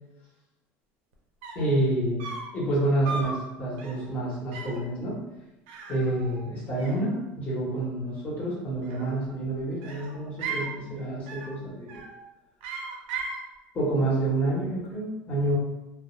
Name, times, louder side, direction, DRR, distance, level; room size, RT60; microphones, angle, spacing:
sound 1, 1.1-1.2 1.4-1.8 2.2-2.6 3.0-3.4 3.8-4.1 4.5-4.9 5.7-6.5 6.8-7.5 8.7-9.3 9.8-10.7 11.3-11.6 11.9-12.2 12.6-13.4, right 4 dB, 80° right, 0.5 m, -37 dB
voice 1, 1.5-2.3 2.5-5.2 5.9-12.0 13.7-15.5, right 2 dB, 30° left, -6 dB, 1.0 m, -28 dB
2.3 x 2.0 x 3.0 m, 1.0 s
cardioid pair, 155°, 5 cm